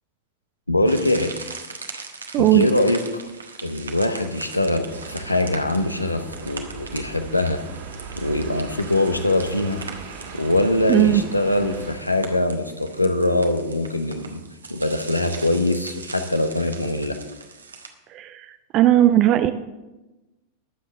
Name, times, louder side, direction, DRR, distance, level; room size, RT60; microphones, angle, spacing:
voice 1, 0.7-1.3 2.4-3.2 3.6-7.6 8.2-9.8 10.3-14.4 14.7-17.2, left 1 dB, 85° left, 8 dB, 1.0 m, -22 dB
sound 1, 0.8-17.9, right 4 dB, 75° right, 1.3 m, -40 dB
sound 2, 4.9-11.9, right 5 dB, 60° right, 2.7 m, -39 dB
voice 2, 10.9-11.2 18.1-19.5, right 13 dB, 35° right, 9 dB, 0.6 m, -17 dB
21.5 x 7.8 x 3.7 m, 1.0 s
figure-of-eight pair, 90°, 0 cm